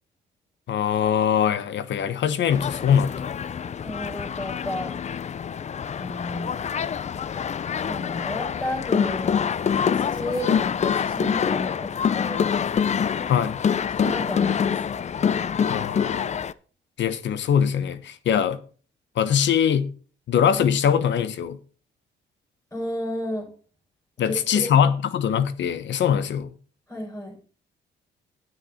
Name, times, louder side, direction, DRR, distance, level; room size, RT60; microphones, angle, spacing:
voice 1, 0.7-3.4 13.3-13.6 15.7-16.4 17.0-18.6 19.2-19.9 20.3-21.6 24.2-26.5, left 8 dB, 65° left, 1.1 m, -22 dB
sound 1, 2.5-16.5, left 7 dB, 35° left, 0.5 m, -26 dB
voice 2, 3.8-4.9 6.0-6.5 7.9-9.5 9.9-11.9 12.2-12.5 13.9-14.8 22.7-23.5 24.2-24.7 26.9-27.3, left 1 dB, 15° left, 6.4 m, -32 dB
9.6 x 9.3 x 4.4 m
cardioid pair, 90°, 20 cm